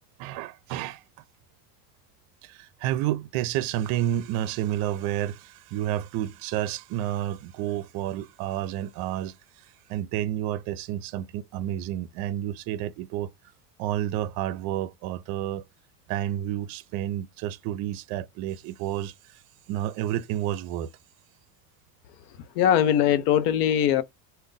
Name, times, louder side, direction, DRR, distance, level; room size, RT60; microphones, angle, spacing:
voice 1, 0.2-1.0 2.4-9.6 9.9-13.3 13.8-15.6 16.1-19.4 19.7-20.9, right 12 dB, 50° right, 0.5 m, -30 dB
voice 2, 22.6-24.0, left 10 dB, 80° left, 0.7 m, -21 dB
2.5 x 2.2 x 3.8 m
supercardioid pair, 125°, 46 cm